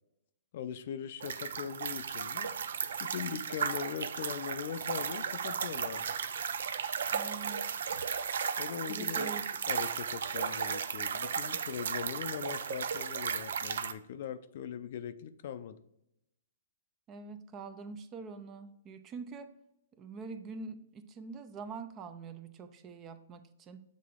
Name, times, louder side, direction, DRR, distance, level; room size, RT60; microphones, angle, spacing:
voice 1, 0.5-2.5 3.0-6.1 8.6-15.8, left 8 dB, 55° left, 12 dB, 0.5 m, -40 dB
sound 1, 1.2-13.9, right 7 dB, 75° right, 0.4 m, -35 dB
voice 2, 7.1-7.6 8.9-9.4 17.1-19.5 20.0-23.8, right 4 dB, 25° right, 10 dB, 0.5 m, -44 dB
7.4 x 3.8 x 3.6 m, 0.80 s
hypercardioid pair, 145°, 0 cm